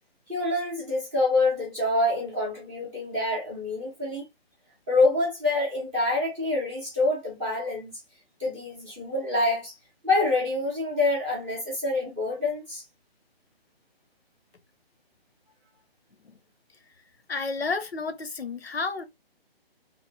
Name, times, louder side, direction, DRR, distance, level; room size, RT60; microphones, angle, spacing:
voice 1, 0.3-4.2 4.9-7.9 8.4-9.7 10.0-12.8, left 2 dB, 5° right, 0.5 m, -26 dB
voice 2, 17.3-19.0, left 4 dB, 85° left, 0.7 m, -31 dB
2.9 x 2.1 x 3.2 m
figure-of-eight pair, 140°, 30 cm